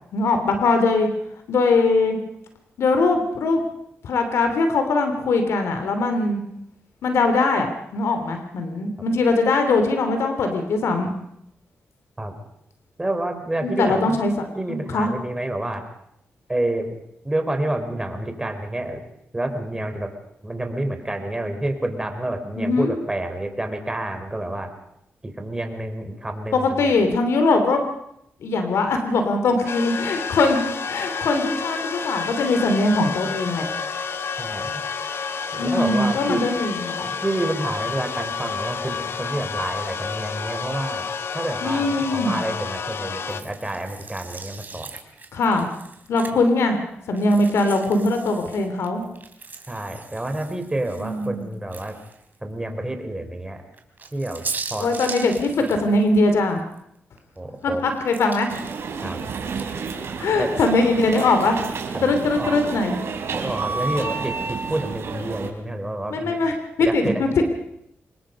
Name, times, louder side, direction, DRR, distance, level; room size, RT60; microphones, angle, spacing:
voice 1, 0.1-1.1 1.5-2.2 2.8-3.6 4.0-6.4 7.0-11.2 13.6-14.3 14.7-15.1 22.5-23.0 26.5-27.8 28.4-33.7 35.6-37.1 41.6-42.3 45.3-45.7 46.1-46.8 47.1-49.0 51.0-51.5 54.8-56.6 57.6-58.5 60.2-61.6 62.0-62.9 66.1-67.3, left 3 dB, 85° left, 6 dB, 3.0 m, -21 dB
voice 2, 13.0-14.2 14.5-15.8 16.5-17.0 17.2-19.1 19.3-20.1 20.4-24.7 25.2-26.9 34.4-34.7 35.5-36.4 37.1-41.1 41.3-44.9 49.7-51.9 52.4-53.6 54.1-54.4 54.7-54.9 57.4-57.8 59.0-59.3 60.4-60.5 61.9-62.1 62.4-62.6 63.3-66.4 66.8-67.2, right 1 dB, 15° right, 6 dB, 4.4 m, -28 dB
sound 1, 29.7-43.4, left 5 dB, 65° left, 1.4 m, -30 dB
sound 2, 43.3-46.6 47.1-52.3 52.8-52.9 53.7-56.8 57.2-59.8, right 4 dB, 45° right, 3.5 m, -39 dB
sound 3, 58.5-65.5, right 5 dB, 70° right, 3.9 m, -30 dB
25.5 x 21.0 x 5.3 m, 0.76 s
cardioid pair, 75°, 4 cm